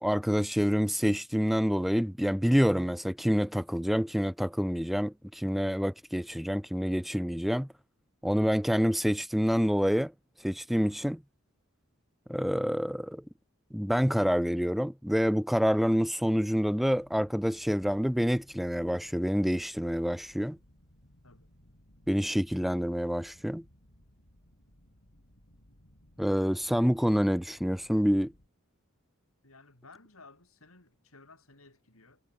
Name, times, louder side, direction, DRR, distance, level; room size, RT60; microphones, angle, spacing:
voice 1, 0.0-7.7 8.2-10.1 10.4-11.2 12.3-13.2 13.7-20.6 22.1-23.6 26.2-28.3, equal, ahead, 0.4 m, -27 dB
sound 1, 16.9-28.5, equal, 55° left, 5.3 m, -61 dB
voice 2, 29.4-32.2, left 3 dB, 80° left, 5.6 m, -56 dB
head